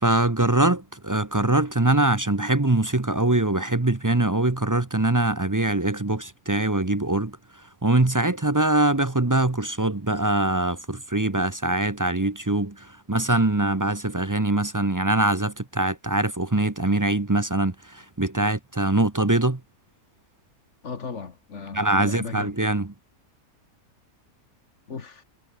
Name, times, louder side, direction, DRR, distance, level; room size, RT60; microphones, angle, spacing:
voice 1, 0.0-7.4 7.8-19.6 21.7-22.9, right 2 dB, 15° right, 0.7 m, -23 dB
voice 2, 20.8-22.7 24.9-25.2, left 5 dB, 50° left, 1.9 m, -36 dB
omnidirectional pair, 1.7 m